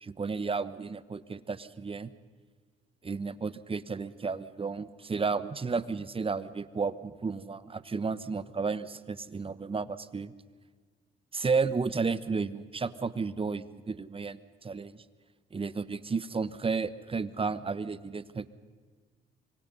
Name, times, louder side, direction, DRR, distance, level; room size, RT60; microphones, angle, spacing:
voice 1, 0.0-2.1 3.0-10.3 11.3-15.0 15.5-18.5, right 4 dB, 30° right, 15 dB, 1.1 m, -32 dB
26.0 x 23.0 x 5.6 m, 1.5 s
cardioid pair, 90°, 20 cm